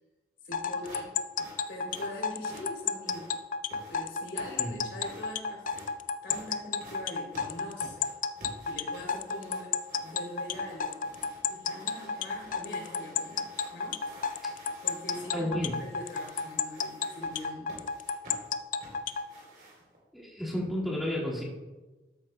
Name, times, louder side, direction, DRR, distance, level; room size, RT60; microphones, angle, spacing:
voice 1, 0.4-1.2 1.7-3.4 3.9-5.7 6.2-8.1 8.6-9.7 10.0-11.0 11.5-14.0 14.3-15.5 15.8-17.8, left 1 dB, 85° left, -1 dB, 3.1 m, -43 dB
sound 1, 0.5-19.3, left 6 dB, 45° left, 0.4 m, -32 dB
sound 2, 0.8-20.0, right 1 dB, 55° right, 3.3 m, -50 dB
voice 2, 15.3-15.7 20.1-21.4, left 1 dB, ahead, -7 dB, 1.9 m, -32 dB
13.0 x 9.0 x 2.2 m, 1.2 s
head